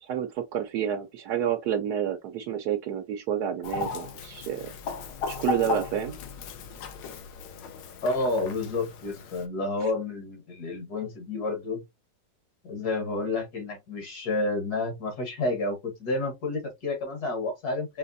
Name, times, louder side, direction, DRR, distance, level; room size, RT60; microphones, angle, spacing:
voice 1, 0.0-4.7 5.3-6.2, right 9 dB, 70° right, 1.1 m, -29 dB
Chicken rooster, 3.6-9.5, left 4 dB, 85° left, 1.4 m, -36 dB
voice 2, 8.0-11.8 12.6-18.0, left 2 dB, 60° left, 1.7 m, -30 dB
5.0 x 3.0 x 2.6 m
omnidirectional pair, 1.9 m